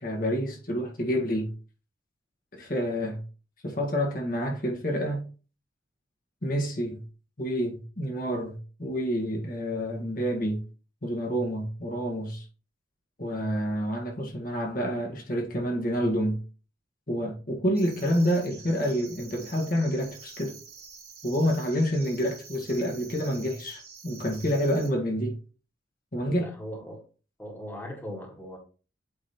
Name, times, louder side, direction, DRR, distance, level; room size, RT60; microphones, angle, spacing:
voice 1, 0.0-1.5 2.5-3.2 3.6-5.2 6.4-7.0 7.4-10.6 11.0-12.4 13.2-16.4 17.1-20.6 21.2-25.4 26.1-26.5, equal, 45° left, 1.6 m, -28 dB
sound 1, 17.7-24.9, right 5 dB, 50° right, 2.3 m, -48 dB
voice 2, 26.3-27.0 27.4-28.6, equal, 10° left, 1.7 m, -39 dB
8.6 x 3.2 x 4.3 m
head